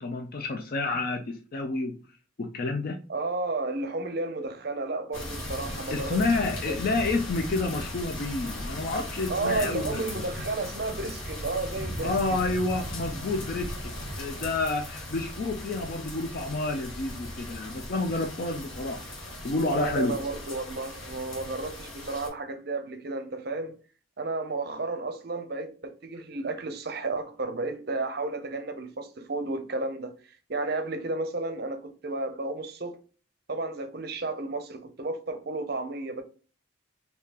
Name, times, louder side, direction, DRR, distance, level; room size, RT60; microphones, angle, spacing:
voice 1, 0.0-2.0 2.4-3.0 5.9-10.1 12.0-19.0 19.4-20.2, left 3 dB, 45° left, 0.4 m, -29 dB
voice 2, 3.1-6.2 6.7-6.8 9.3-12.1 19.7-23.8 24.2-33.0 33.5-36.2, right 3 dB, 50° right, 0.6 m, -32 dB
sound 1, 5.1-22.3, left 1 dB, 70° left, 1.3 m, -37 dB
3.7 x 2.8 x 2.8 m
head